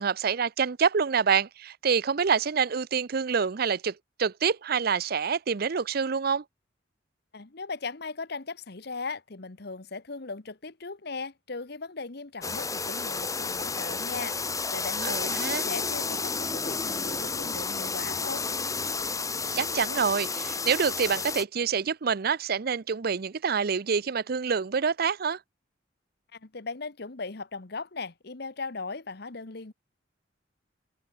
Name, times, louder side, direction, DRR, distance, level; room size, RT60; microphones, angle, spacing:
voice 1, 0.0-6.4 15.0-15.6 19.5-25.4, right 6 dB, 55° right, 0.6 m, -27 dB
voice 2, 7.3-18.5 26.3-29.7, left 4 dB, 55° left, 1.2 m, -38 dB
sound 1, 12.4-21.4, left 4 dB, 20° left, 2.4 m, -31 dB
head